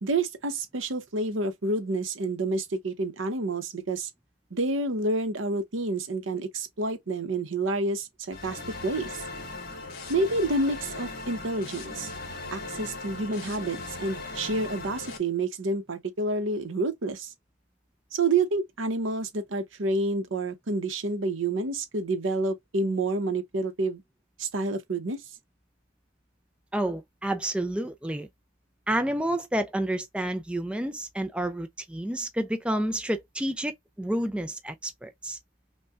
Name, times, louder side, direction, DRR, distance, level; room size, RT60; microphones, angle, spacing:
voice 1, 0.0-4.1 4.5-9.2 10.1-12.1 12.5-17.3 18.1-24.0 24.4-25.2, right 2 dB, 85° right, 0.8 m, -29 dB
sound 1, 8.3-15.2, left 3 dB, 50° left, 1.3 m, -38 dB
voice 2, 26.7-28.3 28.9-35.4, right 1 dB, 5° right, 0.4 m, -30 dB
5.3 x 2.2 x 2.4 m
head